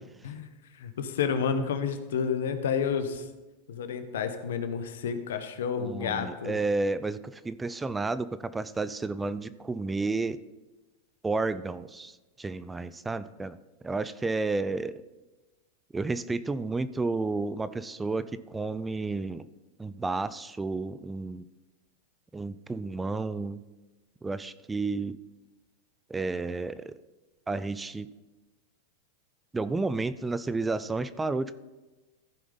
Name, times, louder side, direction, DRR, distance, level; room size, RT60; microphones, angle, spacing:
voice 1, 0.2-3.3 3.7-6.6, left 6 dB, 80° left, 9 dB, 1.0 m, -30 dB
voice 2, 5.8-10.4 11.2-13.6 13.8-15.0 15.9-19.5 19.8-21.4 22.3-23.6 24.2-25.2 26.1-26.9 27.5-28.1 29.5-31.6, right 3 dB, 10° right, 15 dB, 0.4 m, -31 dB
14.5 x 5.0 x 4.0 m, 1.1 s
hypercardioid pair, 115°, 0 cm